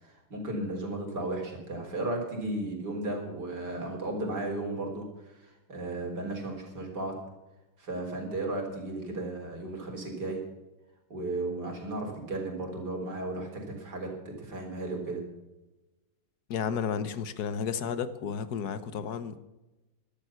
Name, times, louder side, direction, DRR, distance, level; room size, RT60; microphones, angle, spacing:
voice 1, 0.0-7.2 7.8-10.4 11.1-15.2, right 2 dB, 50° right, 2 dB, 4.4 m, -35 dB
voice 2, 16.5-19.4, left 7 dB, 55° left, 13 dB, 1.3 m, -32 dB
14.5 x 12.5 x 5.9 m, 1.0 s
omnidirectional pair, 2.4 m